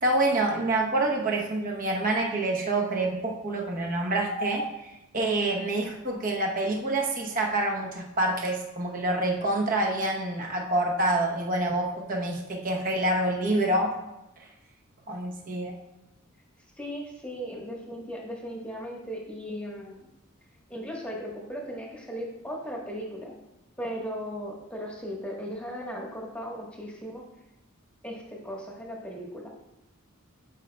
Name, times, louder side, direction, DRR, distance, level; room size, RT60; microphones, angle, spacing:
voice 1, 0.0-13.9 15.1-15.7, right 2 dB, 40° right, 0 dB, 0.9 m, -27 dB
voice 2, 16.8-20.1 20.7-23.3 23.8-27.2 28.0-29.5, equal, 5° left, -2 dB, 1.2 m, -37 dB
12.0 x 5.1 x 2.2 m, 0.94 s
head